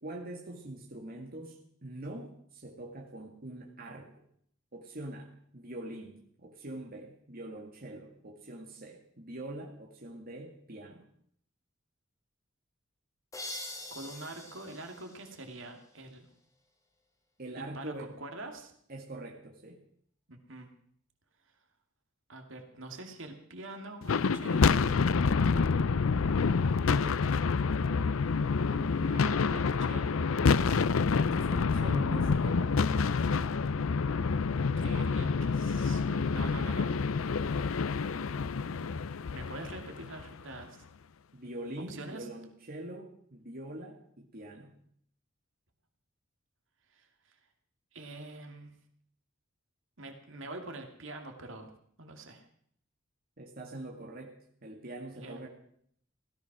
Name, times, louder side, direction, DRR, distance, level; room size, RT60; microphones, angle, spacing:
voice 1, 0.0-4.1 4.7-11.1 17.4-18.1 18.9-19.8 26.7-27.3 31.1-33.2 41.3-44.7 53.4-54.3 54.6-55.5, right 1 dB, 50° right, 0 dB, 2.1 m, -43 dB
sound 1, 13.3-16.0, left 1 dB, 15° left, 2.4 m, -44 dB
voice 2, 13.9-16.3 17.7-18.7 20.3-20.7 22.3-24.8 28.7-30.2 34.8-36.9 38.7-38.9 39.3-40.8 41.8-42.3 46.9-47.4 47.9-48.7 50.0-51.7 52.0-52.5 55.1-55.4, right 2 dB, 70° right, 4 dB, 2.5 m, -45 dB
sound 2, 24.0-40.4, left 5 dB, 85° left, 0.5 m, -28 dB
16.5 x 14.5 x 6.1 m, 0.64 s
head